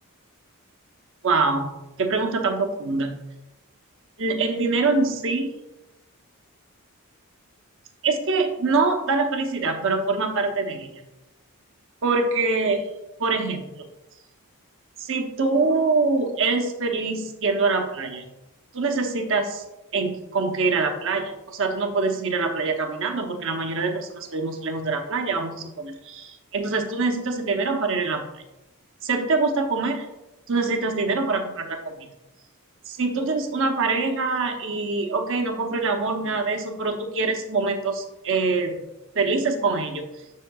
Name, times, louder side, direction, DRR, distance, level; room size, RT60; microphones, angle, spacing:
voice 1, 1.2-1.7 2.0-3.1 4.2-5.5 8.0-10.9 12.0-12.9 13.2-13.9 15.0-18.2 18.7-19.6 19.9-28.2 29.0-30.1 30.5-32.1 32.9-38.8 39.1-40.1, right 3 dB, 60° right, 4 dB, 0.9 m, -24 dB
7.4 x 7.0 x 2.3 m, 0.94 s
head